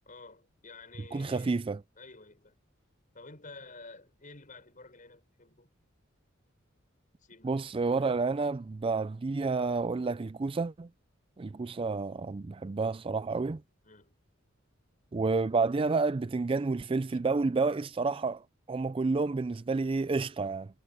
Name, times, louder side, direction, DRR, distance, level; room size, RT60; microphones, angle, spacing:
voice 1, 0.0-1.6 2.0-2.6 3.1-5.7 7.2-7.9 13.8-14.2 17.1-17.2, left 3 dB, 40° left, 6.5 m, -51 dB
voice 2, 1.1-1.8 7.4-10.9 11.4-13.6 15.1-20.7, right 3 dB, 25° right, 0.4 m, -30 dB
head